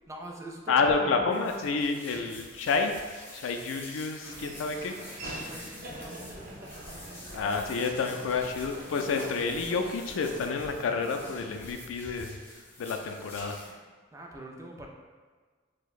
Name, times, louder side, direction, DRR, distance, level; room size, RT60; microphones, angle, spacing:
voice 1, 0.1-0.7 1.0-1.7 2.2-2.4 4.2-4.4 5.3-7.7 13.6-13.8 14.1-14.9, right 1 dB, 15° right, 0 dB, 0.4 m, -44 dB
voice 2, 0.7-2.9 3.3-5.0 7.3-12.4 12.8-13.6, left 4 dB, 80° left, 5 dB, 0.3 m, -29 dB
sound 1, 1.3-13.7, left 1 dB, 10° left, 0.8 m, -48 dB
Laughter / Walk footsteps, 4.2-11.7, right 1 dB, 50° right, 0.7 m, -44 dB
4.5 x 2.1 x 2.4 m, 1.5 s
head